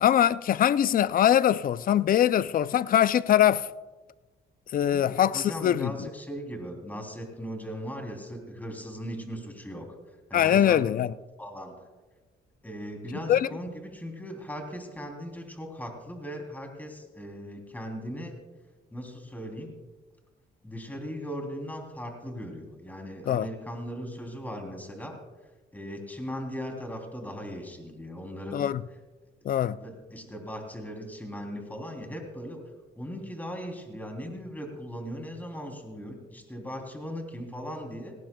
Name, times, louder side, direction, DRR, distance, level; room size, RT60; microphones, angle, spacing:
voice 1, 0.0-3.7 4.7-6.1 10.3-11.1 13.3-13.5 23.3-23.5 28.5-28.8 29.4-29.8, left 10 dB, 45° left, 0.4 m, -22 dB
voice 2, 4.8-9.9 10.3-10.9 11.4-11.7 12.6-18.3 18.9-19.7 20.6-25.2 25.7-28.7 29.6-32.6 33.0-38.2, equal, 10° left, 3.2 m, -38 dB
18.5 x 18.0 x 2.3 m
cardioid pair, 90°, 20 cm